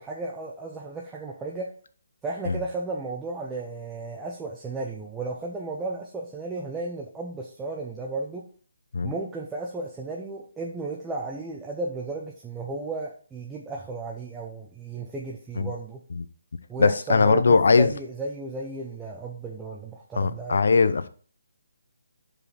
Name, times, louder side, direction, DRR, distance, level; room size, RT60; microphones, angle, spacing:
voice 1, 0.0-1.7 2.2-8.4 9.0-16.0 16.7-20.6, right 3 dB, 5° right, 0.5 m, -34 dB
voice 2, 16.8-17.9 20.2-21.1, left 4 dB, 60° left, 0.6 m, -20 dB
5.0 x 4.9 x 5.7 m
hypercardioid pair, 170°, 0 cm